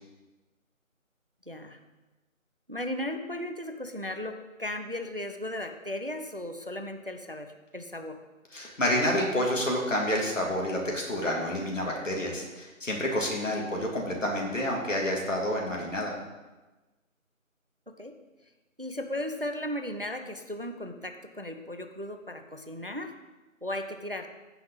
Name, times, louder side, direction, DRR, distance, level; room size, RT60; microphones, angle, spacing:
voice 1, 1.5-1.8 2.7-8.2 17.9-18.2 18.8-23.1 23.6-24.3, left 1 dB, 40° right, 7 dB, 0.6 m, -36 dB
voice 2, 8.5-16.1, left 1 dB, 65° left, -1 dB, 2.9 m, -29 dB
15.5 x 5.9 x 4.0 m, 1.2 s
figure-of-eight pair, 180°, 41 cm